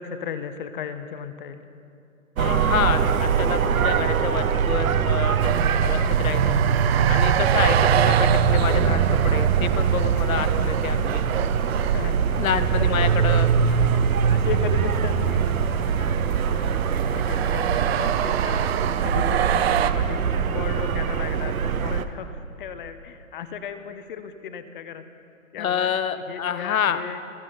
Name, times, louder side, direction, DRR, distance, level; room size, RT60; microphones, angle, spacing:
voice 1, 0.0-1.6 11.8-13.1 13.7-13.8 14.2-18.6 19.0-25.0 25.5-25.9 26.3-27.2, left 7 dB, 40° left, 11 dB, 0.8 m, -35 dB
voice 2, 2.4-6.6 7.1-11.2 12.4-13.5 25.6-27.0, left 8 dB, 75° left, 12 dB, 1.1 m, -28 dB
sound 1, 2.4-22.1, right 7 dB, 90° right, 0.9 m, -22 dB
sound 2, 5.4-19.9, right 10 dB, 50° right, 0.6 m, -28 dB
27.5 x 12.0 x 3.9 m, 2.6 s
hypercardioid pair, 150°, 41 cm